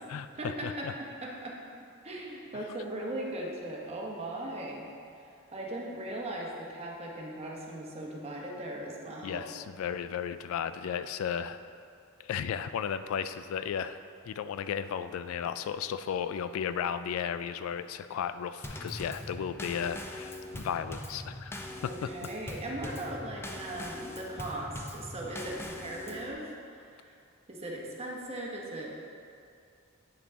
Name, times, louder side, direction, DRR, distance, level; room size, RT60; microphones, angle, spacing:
voice 1, 0.4-1.6 2.0-4.9 5.5-9.5 21.8-27.1 27.5-28.9, right 1 dB, 30° right, -2 dB, 1.0 m, -38 dB
voice 2, 9.2-11.6 12.2-14.0 14.3-22.1, left 8 dB, 80° left, 15 dB, 0.3 m, -34 dB
Drum kit / Snare drum / Bass drum, 18.6-26.3, left 1 dB, 10° left, 0.5 m, -42 dB
8.7 x 6.0 x 3.5 m, 2.5 s
head